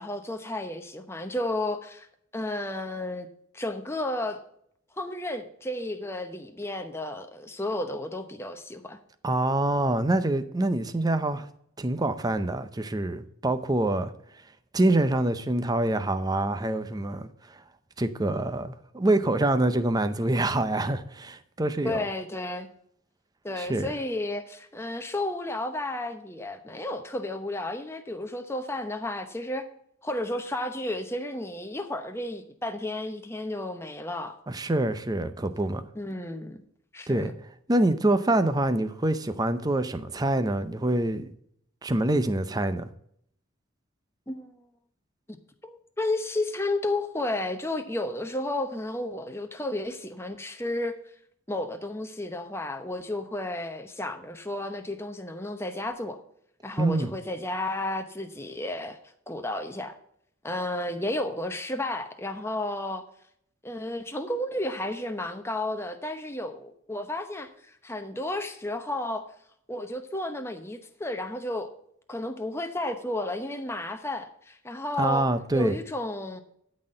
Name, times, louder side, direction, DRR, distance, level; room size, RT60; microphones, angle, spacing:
voice 1, 0.0-2.1 2.3-3.3 3.5-4.4 5.0-9.0 21.8-22.7 23.4-29.7 30.0-34.4 35.9-36.6 36.9-37.3 44.3-44.6 45.6-50.9 51.5-56.2 56.6-59.0 59.3-60.0 60.4-63.0 63.6-69.2 69.7-71.7 72.1-75.3 75.5-76.4, left 1 dB, 10° left, 0.9 m, -32 dB
voice 2, 9.2-11.5 11.8-14.1 14.7-17.3 18.0-22.0 23.6-23.9 34.5-35.8 37.1-37.3 37.7-41.3 41.8-42.9 56.8-57.1 75.0-75.8, right 1 dB, 20° right, 0.5 m, -25 dB
12.5 x 4.2 x 7.6 m
head